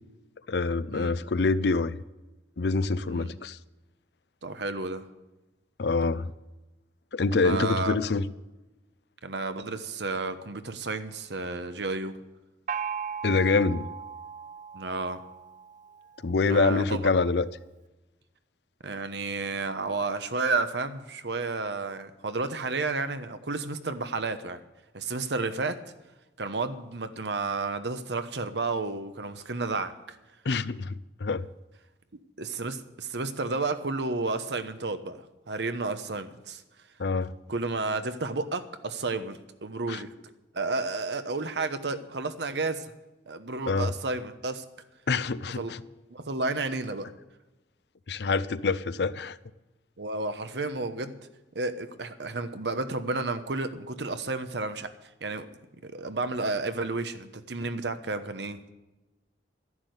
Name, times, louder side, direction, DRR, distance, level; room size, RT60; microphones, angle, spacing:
voice 1, 0.5-2.0 2.6-3.6 5.8-6.3 7.1-8.3 13.2-13.9 16.2-17.5 30.5-31.5 37.0-37.3 39.9-40.0 43.7-43.9 45.1-45.8 48.1-49.4, left 3 dB, 70° left, 0.6 m, -26 dB
voice 2, 4.4-5.1 7.3-8.0 9.2-12.2 14.7-15.2 16.5-17.0 18.8-24.6 24.9-25.8 26.4-30.2 32.4-36.6 37.5-40.1 40.5-42.9 43.3-44.6 45.4-45.7 46.1-47.1 50.0-51.2 51.5-54.9 55.2-55.5 55.8-58.7, right 3 dB, 75° right, 1.1 m, -31 dB
Gong, 12.7-16.2, right 7 dB, 45° right, 0.6 m, -37 dB
12.0 x 11.0 x 8.0 m
head